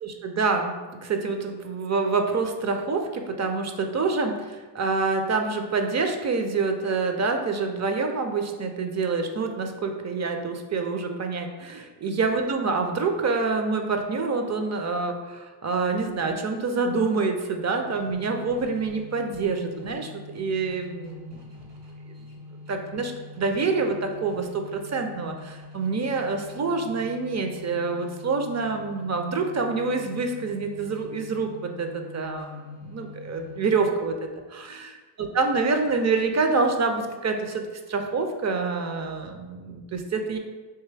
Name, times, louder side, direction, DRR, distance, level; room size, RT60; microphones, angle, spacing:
voice 1, 0.0-0.7 1.0-21.4 22.7-34.2 34.5-34.9 35.2-37.6 37.9-40.4, right 4 dB, 35° right, 5 dB, 0.5 m, -27 dB
sound 1, 17.8-33.9, left 2 dB, 60° right, 1.0 m, -44 dB
3.5 x 2.6 x 3.3 m, 1.3 s
supercardioid pair, 60°, 47 cm